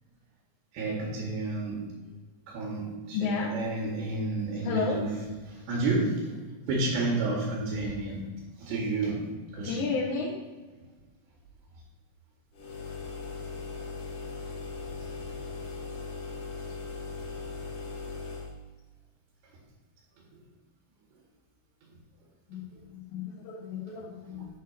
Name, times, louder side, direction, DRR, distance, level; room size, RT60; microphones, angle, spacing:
voice 1, 0.7-1.8 2.5-5.1 5.5-6.4 6.7-8.3 8.6-9.3 9.5-9.8 14.4-14.5 15.0-15.3 24.3-24.5, right 2 dB, 85° right, -4 dB, 4.3 m, -31 dB
voice 2, 3.1-3.6 4.6-5.0 9.6-10.4 22.5-24.5, left 5 dB, 85° left, -5 dB, 3.6 m, -32 dB
sound 1, 12.5-18.6, left 4 dB, 55° left, 1.6 m, -39 dB
12.0 x 9.9 x 3.0 m, 1.3 s
omnidirectional pair, 4.8 m